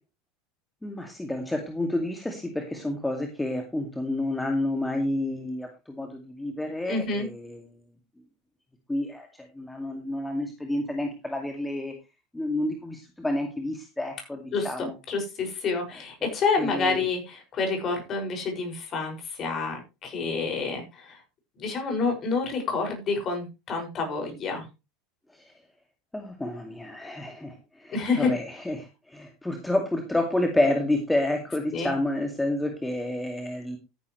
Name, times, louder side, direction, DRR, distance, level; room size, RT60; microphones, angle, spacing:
voice 1, 0.8-7.8 8.9-11.9 12.3-15.0 16.2-16.3 16.6-17.0 25.3-25.5 26.1-33.8, left 1 dB, 5° left, 4 dB, 2.3 m, -29 dB
voice 2, 6.9-7.3 14.5-21.2 21.6-24.7 27.9-28.3 31.7-31.9, left 4 dB, 35° left, 4 dB, 6.2 m, -28 dB
13.5 x 11.0 x 3.2 m, 0.28 s
figure-of-eight pair, 75°, 0 cm